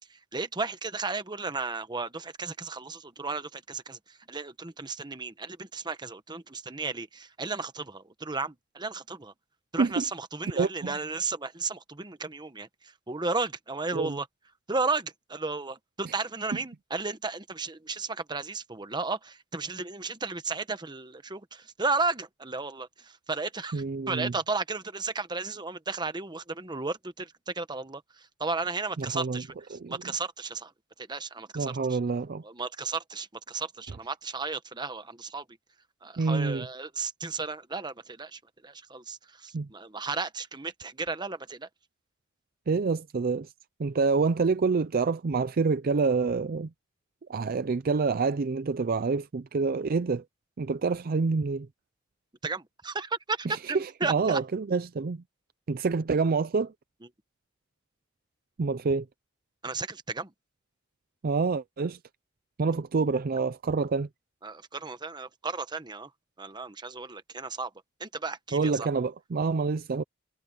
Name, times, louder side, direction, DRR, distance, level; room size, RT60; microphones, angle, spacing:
voice 1, 0.1-9.3 9.7-14.3 14.7-30.7 31.1-32.0 32.4-35.4 36.0-41.7 52.4-54.4 59.6-60.3 64.4-66.1 66.4-67.7 68.0-68.9, right 3 dB, 20° right, 1.1 m, -34 dB
voice 2, 10.5-10.9 13.9-14.2 23.7-24.3 29.0-29.4 29.7-30.0 31.5-32.4 36.2-36.7 39.5-39.7 42.7-43.5 43.8-46.7 47.3-50.2 50.6-51.7 53.5-55.2 55.7-56.7 58.6-59.1 61.2-62.0 62.6-64.1 68.5-70.0, right 4 dB, 45° right, 0.5 m, -27 dB
head